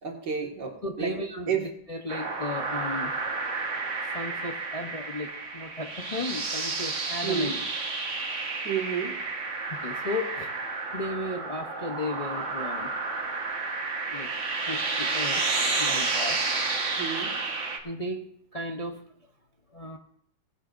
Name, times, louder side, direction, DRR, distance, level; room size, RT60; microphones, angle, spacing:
voice 1, 0.0-1.1 1.5-1.6 7.2-7.6 8.6-9.1 17.0-17.3, right 8 dB, 70° right, 0 dB, 2.5 m, -30 dB
voice 2, 0.8-3.1 4.1-7.5 9.7-10.5 10.9-12.9 14.1-14.3 14.6-15.4 15.8-16.4 17.1-17.2 17.8-19.0 19.7-20.0, left 2 dB, 30° left, 2 dB, 0.6 m, -34 dB
sound 1, 2.1-17.8, right 3 dB, 45° right, 1.6 m, -31 dB
18.0 x 11.5 x 2.6 m, 0.68 s
omnidirectional pair, 2.0 m